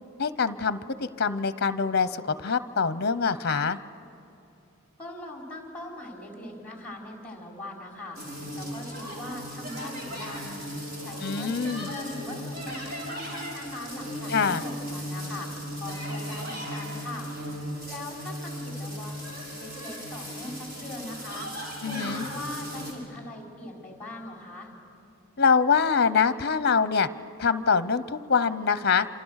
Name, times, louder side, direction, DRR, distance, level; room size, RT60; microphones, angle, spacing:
voice 1, 0.2-3.8 11.2-11.9 14.3-14.6 21.8-22.2 25.4-27.1 27.4-29.1, left 5 dB, 50° left, 14 dB, 0.8 m, -24 dB
voice 2, 5.0-17.3 17.9-19.1 19.6-21.5 21.9-24.7, left 1 dB, 5° left, 0 dB, 4.6 m, -41 dB
sound 1, 8.1-22.9, equal, 45° right, 6.3 m, -36 dB
28.5 x 27.0 x 6.5 m, 2.7 s
head